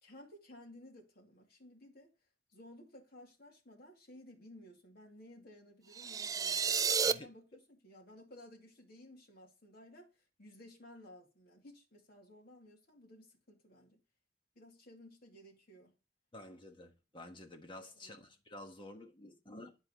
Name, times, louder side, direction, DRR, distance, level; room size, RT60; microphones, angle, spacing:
voice 1, 0.0-2.1 2.5-10.1 10.4-14.0 14.6-15.9 17.9-18.2, left 1 dB, 55° left, 2.5 m, -56 dB
sound 1, 5.9-7.1, right 6 dB, 20° right, 0.3 m, -31 dB
voice 2, 16.3-19.8, left 1 dB, 30° left, 1.3 m, -51 dB
9.9 x 4.5 x 4.4 m
head